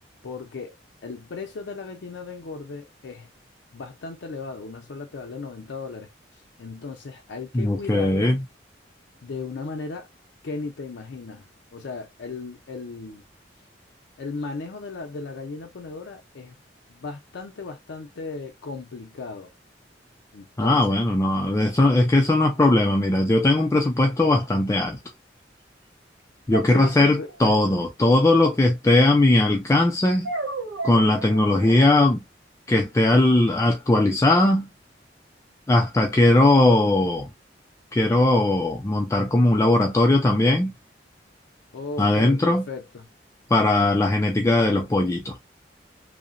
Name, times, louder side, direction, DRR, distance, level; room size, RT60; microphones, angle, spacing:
voice 1, 0.2-3.3 3.7-8.4 9.2-10.1 10.4-13.2 14.2-16.6 16.9-19.5 20.3-21.0 26.7-27.6 41.7-43.1, left 4 dB, 80° left, 0.5 m, -36 dB
voice 2, 7.5-8.4 20.6-25.0 26.5-30.3 30.8-32.2 32.7-34.7 35.7-37.3 37.9-40.7 42.0-42.6 43.5-45.4, left 2 dB, 15° left, 0.3 m, -19 dB
sound 1, 26.5-27.5 30.2-31.9, right 3 dB, 90° right, 0.9 m, -33 dB
2.8 x 2.0 x 2.5 m
head